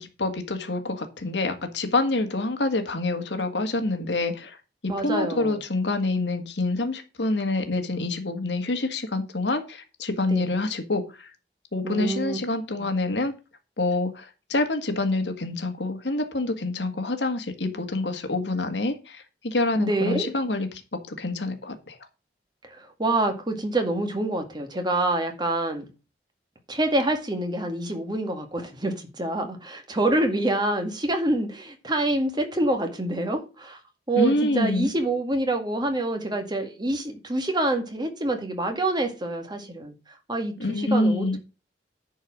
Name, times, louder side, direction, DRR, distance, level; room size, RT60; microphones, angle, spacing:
voice 1, 0.0-4.6 4.8-11.0 11.7-13.3 13.8-20.7 21.1-22.0 34.2-34.9 40.6-41.4, left 2 dB, 80° left, 1.7 m, -26 dB
voice 2, 4.9-5.6 10.3-10.5 11.8-12.4 12.8-12.9 19.8-20.3 22.6-25.9 26.7-33.8 34.1-39.9 40.3-41.4, right 2 dB, 25° right, 1.9 m, -26 dB
10.5 x 4.7 x 6.1 m
head